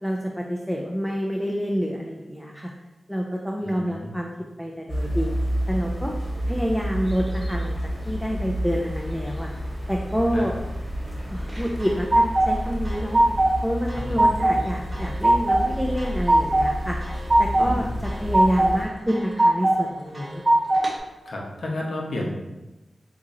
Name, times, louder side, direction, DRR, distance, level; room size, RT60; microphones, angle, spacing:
voice 1, 0.0-2.7 3.1-4.3 4.6-5.3 5.7-6.1 6.5-7.8 8.1-9.5 9.9-10.5 11.3-13.2 13.6-17.0 17.4-20.4, equal, ahead, -1 dB, 0.4 m, -27 dB
voice 2, 3.6-4.1 10.3-10.6 13.9-14.3 17.6-18.0 21.3-22.3, left 1 dB, 75° left, -2 dB, 0.7 m, -32 dB
sound 1, 4.9-18.8, equal, 25° right, 1.2 m, -30 dB
sound 2, 11.5-12.5 12.8-13.6 13.9-14.6 14.9-15.6 16.0-16.7 17.0-17.7 18.0-18.7 19.1-19.8 20.1-20.9, right 1 dB, 40° right, 0.7 m, -19 dB
3.0 x 2.4 x 3.8 m, 1.1 s
cardioid pair, 55°, 0 cm